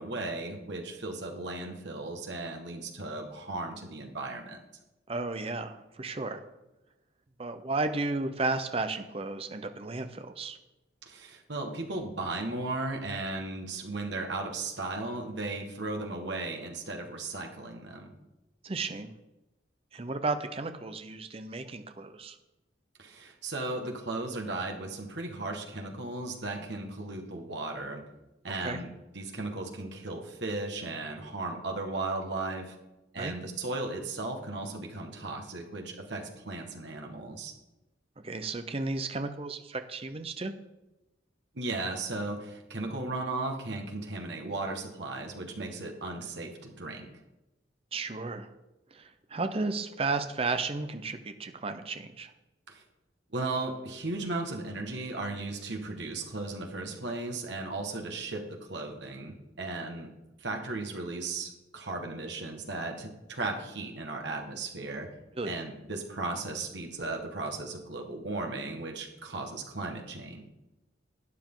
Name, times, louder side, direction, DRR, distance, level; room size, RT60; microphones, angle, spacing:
voice 1, 0.0-4.6 11.0-18.1 23.0-28.0 28.4-28.9 29.1-32.8 33.1-37.5 41.5-47.1 52.7-52.8 53.3-60.1 60.4-65.1 65.4-70.5, right 2 dB, 65° right, 2 dB, 1.7 m, -36 dB
voice 2, 5.1-6.4 7.4-10.6 18.6-19.1 19.9-22.4 28.6-28.8 33.2-33.3 38.2-40.5 47.9-48.5 48.9-52.3 65.4-65.6, right 3 dB, 30° right, 8 dB, 0.7 m, -33 dB
12.0 x 9.5 x 3.8 m, 0.98 s
head